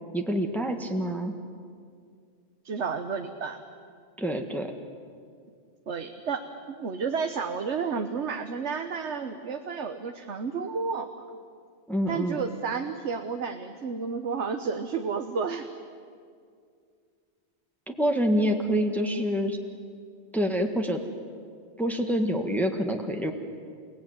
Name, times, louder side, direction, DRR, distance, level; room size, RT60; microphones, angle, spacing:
voice 1, 0.1-1.3 4.2-4.7 11.9-12.4 17.9-19.6 20.3-21.0 21.8-23.3, equal, ahead, 4 dB, 1.6 m, -26 dB
voice 2, 2.6-3.6 5.9-6.4 6.7-11.1 12.1-15.7, right 5 dB, 80° right, 6 dB, 1.4 m, -31 dB
30.0 x 17.5 x 9.5 m, 2.2 s
omnidirectional pair, 1.2 m